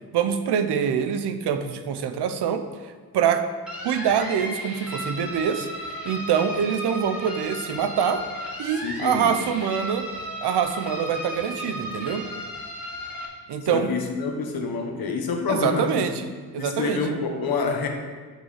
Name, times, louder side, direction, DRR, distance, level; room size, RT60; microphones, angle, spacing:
voice 1, 0.1-2.6 3.1-3.4 3.8-5.7 6.0-8.2 8.6-10.1 10.4-12.2 13.5-13.9 15.5-16.2 16.5-17.0, right 7 dB, 90° right, 9 dB, 0.7 m, -24 dB
sound 1, 3.7-13.3, equal, ahead, 1.9 m, -35 dB
voice 2, 8.8-9.3 13.6-16.1 16.6-17.9, left 4 dB, 65° left, 3 dB, 1.2 m, -27 dB
6.2 x 5.5 x 6.4 m, 1.5 s
cardioid pair, 110°, 39 cm